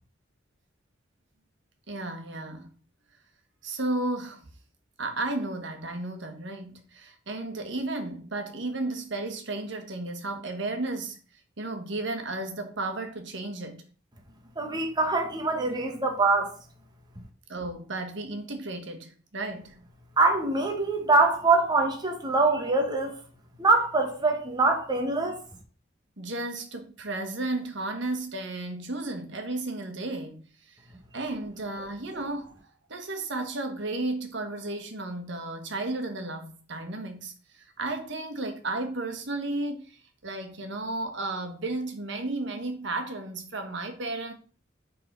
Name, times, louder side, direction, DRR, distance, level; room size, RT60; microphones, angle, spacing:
voice 1, 1.9-2.7 3.6-4.5 5.0-11.2 11.6-13.8 17.5-19.8 26.2-30.8 31.1-32.5 32.9-44.3, right 2 dB, 70° right, 1.4 m, -33 dB
voice 2, 14.6-16.5 20.2-23.1 23.6-25.4, right 3 dB, 20° right, 1.1 m, -24 dB
7.6 x 4.0 x 5.4 m
head